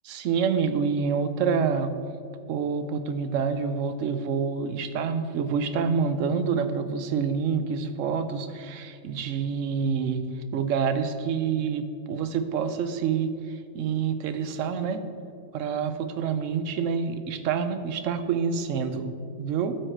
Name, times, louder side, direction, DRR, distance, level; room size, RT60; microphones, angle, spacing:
voice 1, 0.0-1.9 2.5-10.2 10.5-13.3 13.7-15.0 15.5-19.1 19.4-19.7, right 6 dB, 70° right, 10 dB, 0.9 m, -27 dB
12.5 x 4.7 x 4.4 m, 2.3 s
omnidirectional pair, 1.5 m